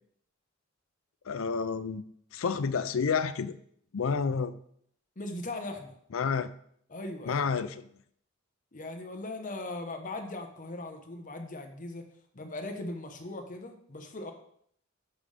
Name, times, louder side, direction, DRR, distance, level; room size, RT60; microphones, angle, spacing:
voice 1, 1.3-2.0 2.3-3.5 3.9-4.5 6.1-6.5 7.3-7.7, left 5 dB, 80° left, 13 dB, 0.5 m, -29 dB
voice 2, 5.2-6.0 6.9-7.5 8.7-12.1 12.3-14.3, left 2 dB, 40° left, 5 dB, 1.0 m, -39 dB
11.0 x 5.2 x 3.4 m, 0.66 s
head